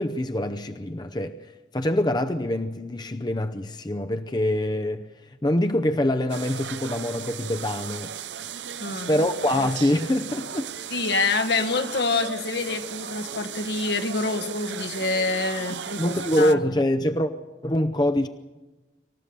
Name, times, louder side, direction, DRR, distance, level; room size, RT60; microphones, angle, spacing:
voice 1, 0.0-1.4 1.7-5.1 5.4-8.1 9.1-11.0 16.0-17.3 17.6-18.3, left 1 dB, 25° left, 0.7 m, -24 dB
sound 1, 6.3-16.5, right 8 dB, 90° right, 0.7 m, -36 dB
voice 2, 8.8-9.3 10.9-16.6, left 3 dB, 70° left, 1.5 m, -26 dB
26.5 x 14.5 x 6.9 m
head